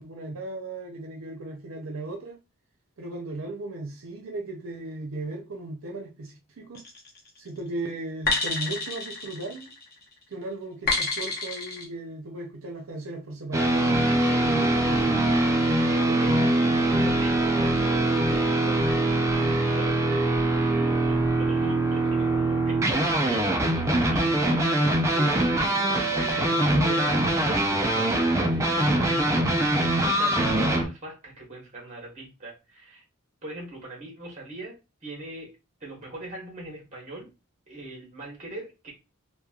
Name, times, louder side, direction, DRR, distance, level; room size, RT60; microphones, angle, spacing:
voice 1, 0.0-2.4 3.0-6.8 7.4-9.7 10.3-14.0 14.4-15.2, right 2 dB, 75° right, 2 dB, 0.6 m, -36 dB
sound 1, 6.7-7.2 8.3-9.9 10.9-11.8, left 3 dB, 45° left, 0.8 m, -29 dB
sound 2, 13.5-30.9, right 1 dB, 15° right, 0.3 m, -23 dB
voice 2, 15.9-16.5 16.8-33.0 33.4-34.8 35.0-35.5 35.8-37.3 37.7-38.9, right 2 dB, 35° right, -2 dB, 1.1 m, -41 dB
2.9 x 2.2 x 2.3 m, 0.27 s
head